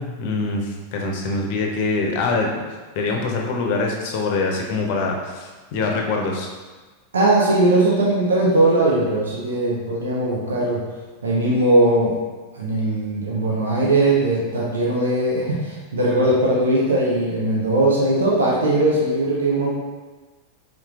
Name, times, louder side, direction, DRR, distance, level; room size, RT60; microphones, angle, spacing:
voice 1, 0.0-2.6 2.9-6.5, left 3 dB, 50° left, 1 dB, 0.7 m, -24 dB
voice 2, 7.1-10.8 11.2-12.1 12.5-19.7, right 1 dB, 70° right, -5 dB, 0.7 m, -19 dB
4.4 x 3.8 x 2.4 m, 1.3 s
figure-of-eight pair, 90°, 0 cm